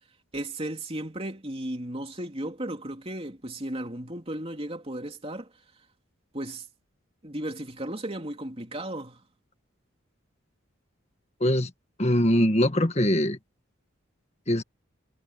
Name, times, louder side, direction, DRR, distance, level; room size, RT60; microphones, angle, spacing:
voice 1, 0.3-5.5 6.3-6.6 7.2-9.2, right 1 dB, 30° right, 3.1 m, -35 dB
voice 2, 11.4-11.7 12.0-13.4 14.5-14.6, left 1 dB, 30° left, 1.6 m, -22 dB
head